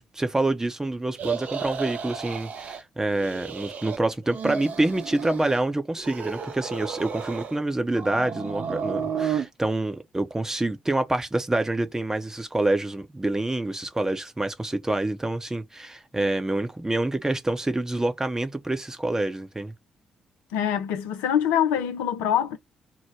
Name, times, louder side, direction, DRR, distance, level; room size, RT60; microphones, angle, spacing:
voice 1, 0.0-19.7, right 2 dB, 15° right, 0.7 m, -27 dB
sound 1, 1.1-2.8 3.1-4.0 4.2-5.6 6.0-7.6 7.9-9.5, right 7 dB, 55° right, 0.6 m, -32 dB
voice 2, 20.5-22.6, left 9 dB, 75° left, 0.4 m, -24 dB
2.9 x 2.1 x 3.4 m
hypercardioid pair, 40°, 3 cm